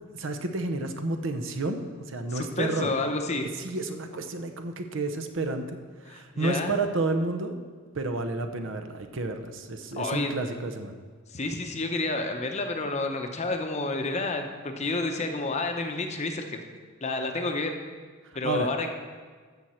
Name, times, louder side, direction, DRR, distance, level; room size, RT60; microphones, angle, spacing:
voice 1, 0.1-2.9 3.6-5.8 6.0-7.6 7.9-11.0 18.2-18.7, right 2 dB, 60° right, 7 dB, 0.7 m, -31 dB
voice 2, 2.3-3.5 6.1-6.8 10.0-10.3 11.3-16.6 17.0-17.8 18.3-18.9, left 2 dB, 30° left, 5 dB, 0.7 m, -30 dB
13.5 x 6.3 x 4.4 m, 1.5 s
head